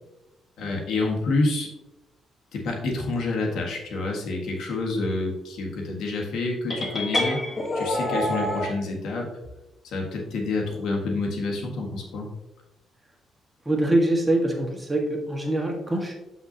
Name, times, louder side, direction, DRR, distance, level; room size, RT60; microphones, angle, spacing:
voice 1, 0.6-1.7 2.5-7.4 7.7-9.3 9.8-12.3, left 3 dB, 80° left, 0 dB, 1.6 m, -28 dB
sound 1, 6.7-8.7, left 1 dB, 30° left, 1.3 m, -27 dB
voice 2, 13.6-16.1, right 1 dB, 15° right, 0 dB, 1.5 m, -24 dB
7.3 x 5.8 x 2.8 m, 0.99 s
cardioid pair, 90°, 0 cm